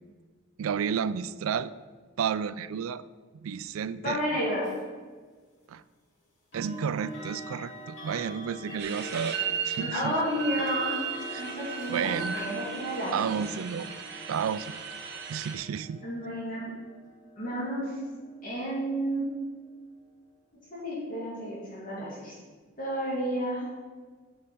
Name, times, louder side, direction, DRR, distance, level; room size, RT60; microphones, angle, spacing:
voice 1, 0.6-1.7 2.2-3.0 3.4-4.2 5.7-5.8 6.5-9.4 9.6-10.1 11.3-11.5 11.9-12.4 13.1-13.9 14.3-14.7 15.3-16.0, right 7 dB, 90° right, 16 dB, 0.4 m, -31 dB
voice 2, 4.0-4.7 9.8-11.0 11.4-13.4 16.0-16.7 17.4-17.9 18.4-19.3 20.7-22.4 22.8-23.7, equal, 40° left, -6 dB, 2.5 m, -31 dB
sound 1, 4.6-4.8 6.5-19.4, equal, 70° left, 2.8 m, -44 dB
sound 2, 8.8-15.5, right 7 dB, 50° right, 1.1 m, -36 dB
7.5 x 6.5 x 5.3 m, 1.5 s
head